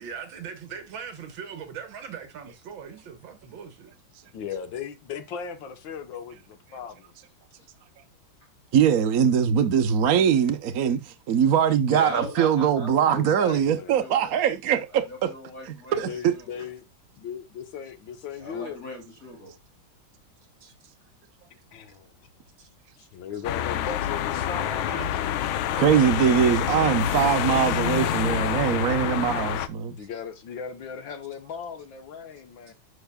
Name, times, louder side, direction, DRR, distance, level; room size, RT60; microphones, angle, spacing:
voice 1, 0.0-3.9 20.6-20.7 24.6-25.1 27.1-27.2 28.1-28.2 32.7-32.8, right 7 dB, 75° right, 1.9 m, -40 dB
voice 2, 4.3-7.1 13.0-14.0 16.0-16.9 17.2-18.8 21.5-22.1 23.0-24.9 29.9-32.7, left 7 dB, 70° left, 1.7 m, -37 dB
voice 3, 8.7-11.0 11.3-15.3 15.6-16.3 25.8-29.9, right 8 dB, 55° right, 1.2 m, -22 dB
voice 4, 11.9-14.4 14.9-16.1 16.3-16.7 18.3-19.5, left 1 dB, 40° left, 3.6 m, -39 dB
sound 1, 23.4-29.7, left 11 dB, 85° left, 1.5 m, -27 dB
13.0 x 5.3 x 2.2 m
omnidirectional pair, 2.2 m